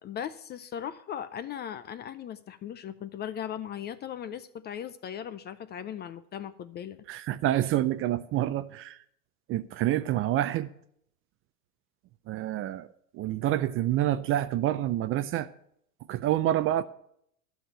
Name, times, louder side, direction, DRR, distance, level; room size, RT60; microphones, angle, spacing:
voice 1, 0.0-7.0, left 9 dB, 25° left, 0.5 m, -38 dB
voice 2, 7.1-9.0 9.5-10.7 12.3-12.9 13.1-15.5 16.1-16.8, right 13 dB, 30° right, 0.5 m, -27 dB
12.5 x 6.6 x 8.8 m
hypercardioid pair, 105°, 46 cm